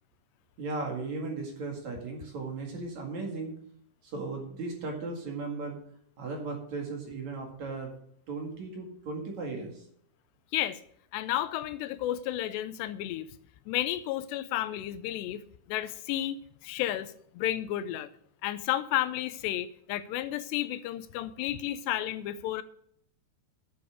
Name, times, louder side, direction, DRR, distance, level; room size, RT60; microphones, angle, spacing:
voice 1, 0.6-3.6 4.0-5.8 6.2-7.9 8.3-9.8, right 3 dB, 50° right, 2.9 m, -36 dB
voice 2, 11.1-13.3 13.7-15.4 15.7-16.4 16.6-18.1 18.4-22.6, left 13 dB, 85° left, 2.8 m, -32 dB
10.5 x 6.9 x 6.5 m
omnidirectional pair, 4.9 m